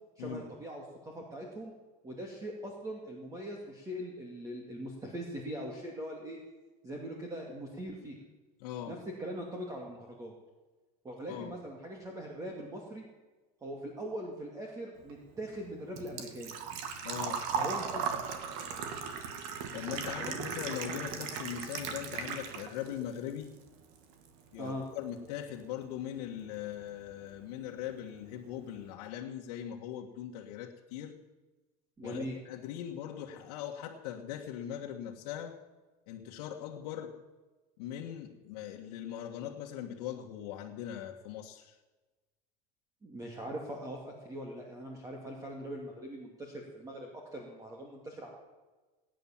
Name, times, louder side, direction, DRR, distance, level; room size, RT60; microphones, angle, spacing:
voice 1, 0.2-1.7 2.0-6.4 6.8-8.2 8.9-10.3 11.0-13.0 13.6-16.6 17.6-18.2 20.2-20.6 24.6-24.8 32.0-32.3 43.0-48.3, equal, 15° right, 0 dB, 2.4 m, -41 dB
voice 2, 8.6-9.0 11.3-11.5 17.0-17.5 19.7-23.5 24.5-31.2 32.0-35.6 36.1-37.2 37.8-41.8, left 10 dB, 80° left, -1 dB, 1.7 m, -40 dB
Engine / Trickle dribble / Fill (with liquid), 15.0-22.9 23.3-24.3 24.5-24.6 26.6-26.7 26.8-27.2 27.5-27.6 27.9-28.0, right 6 dB, 65° right, 2.2 m, -37 dB
18.5 x 10.5 x 7.3 m, 1.2 s
supercardioid pair, 145°, 20 cm